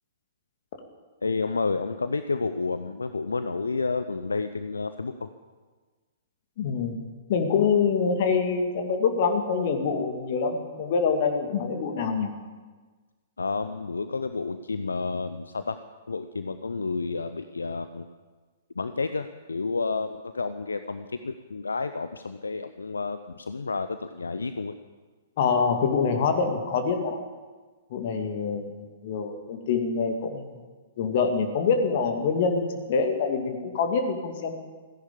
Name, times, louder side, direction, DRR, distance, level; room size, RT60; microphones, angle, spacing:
voice 1, 1.2-5.3 13.4-18.1 18.8-24.8, left 4 dB, 75° left, 10 dB, 0.6 m, -30 dB
voice 2, 6.6-7.0 7.3-12.3 25.4-27.2 27.9-30.6 31.0-34.5, left 5 dB, 50° left, 5 dB, 2.3 m, -25 dB
15.0 x 11.0 x 8.5 m, 1.4 s
figure-of-eight pair, 110°, 0 cm